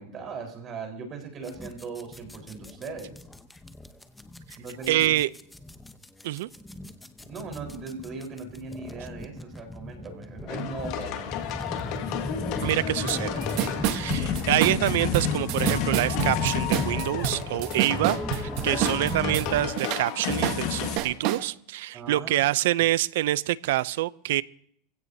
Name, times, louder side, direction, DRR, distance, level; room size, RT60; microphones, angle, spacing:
voice 1, 0.0-3.1 4.6-5.1 7.2-11.3 21.9-22.3, right 4 dB, 30° right, 4 dB, 4.2 m, -38 dB
sound 1, 1.4-19.7, left 1 dB, 5° left, 0.8 m, -36 dB
voice 2, 4.9-5.3 6.2-6.5 12.6-13.4 13.9-24.4, right 15 dB, 75° right, 20 dB, 0.5 m, -26 dB
sound 2, 10.5-21.0, left 9 dB, 55° left, 1.8 m, -31 dB
sound 3, 13.1-13.2 13.4-19.5 19.8-21.4, right 13 dB, 55° right, 1.0 m, -28 dB
23.5 x 16.5 x 2.8 m, 0.64 s
supercardioid pair, 145°, 0 cm